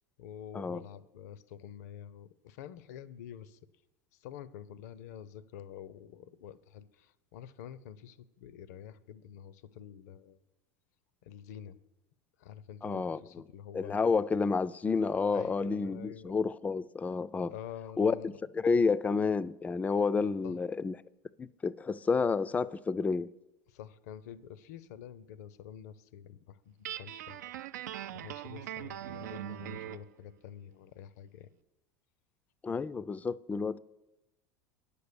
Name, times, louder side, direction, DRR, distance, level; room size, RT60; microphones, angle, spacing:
voice 1, 0.2-3.6 4.1-10.4 11.2-11.8 12.4-14.0 15.3-16.3 17.5-18.4 20.4-20.6 23.7-27.5 28.1-31.5, left 9 dB, 70° left, 0.6 m, -48 dB
voice 2, 12.8-13.4 13.7-17.5 18.0-21.0 21.4-23.3 32.6-33.8, left 4 dB, 15° left, 0.3 m, -30 dB
Guitar, 26.8-30.1, right 12 dB, 80° right, 0.4 m, -41 dB
9.5 x 6.8 x 6.8 m
hypercardioid pair, 90°, 9 cm